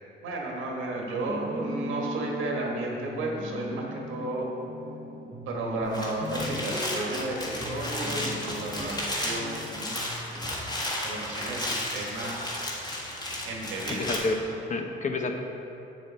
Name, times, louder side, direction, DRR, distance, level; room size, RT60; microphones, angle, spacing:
voice 1, 0.2-4.5 5.5-9.8 11.0-12.4 13.4-14.1, right 2 dB, 80° right, -1 dB, 1.5 m, -33 dB
sound 1, 1.2-10.4, equal, 20° right, 0.8 m, -38 dB
sound 2, 5.8-14.2, left 1 dB, 20° left, 1.6 m, -33 dB
voice 2, 13.9-15.3, left 2 dB, 40° left, 4 dB, 0.8 m, -29 dB
7.4 x 6.6 x 4.2 m, 3.0 s
cardioid pair, 90°, 20 cm